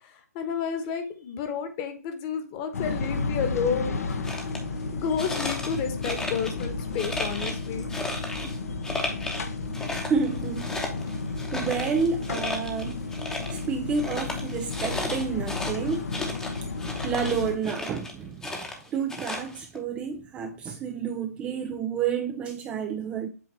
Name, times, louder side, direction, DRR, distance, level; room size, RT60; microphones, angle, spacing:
voice 1, 0.3-4.1 4.9-7.9, left 6 dB, 30° left, 1.2 m, -30 dB
sound 1, 2.7-17.6, left 3 dB, 70° left, 0.9 m, -33 dB
sound 2, 4.1-4.6 5.2-6.7 7.0-8.6 8.8-9.5 9.7-13.7 13.9-18.1 18.4-19.8, left 2 dB, 5° left, 0.9 m, -34 dB
voice 2, 10.1-10.7 11.5-13.0 13.5-16.1 17.0-18.7 18.9-23.3, right 6 dB, 15° right, 0.4 m, -29 dB
7.9 x 2.9 x 4.1 m
hypercardioid pair, 140°, 9 cm